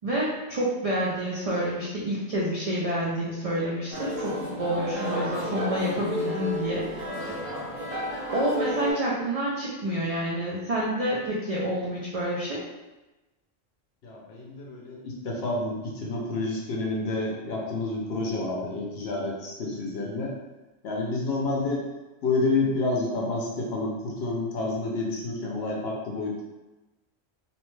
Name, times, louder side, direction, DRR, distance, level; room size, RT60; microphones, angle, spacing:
voice 1, 0.0-6.9 8.3-12.6, right 1 dB, 70° right, -6 dB, 0.3 m, -28 dB
sound 1, 3.9-8.9, equal, 90° right, 1.1 m, -31 dB
voice 2, 14.0-20.3 20.8-21.8 22.2-26.4, left 2 dB, 65° left, -2 dB, 0.8 m, -29 dB
2.7 x 2.1 x 3.1 m, 1.1 s
omnidirectional pair, 1.3 m